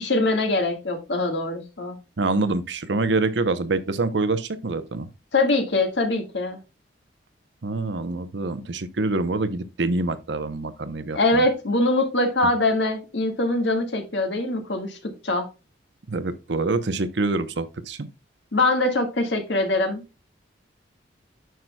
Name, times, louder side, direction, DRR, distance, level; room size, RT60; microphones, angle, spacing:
voice 1, 0.0-2.0 5.3-6.6 11.1-15.5 18.5-20.0, left 2 dB, 70° left, 1.7 m, -23 dB
voice 2, 2.2-5.1 7.6-11.4 16.1-18.1, right 3 dB, 70° right, 0.7 m, -26 dB
9.2 x 6.1 x 2.2 m
head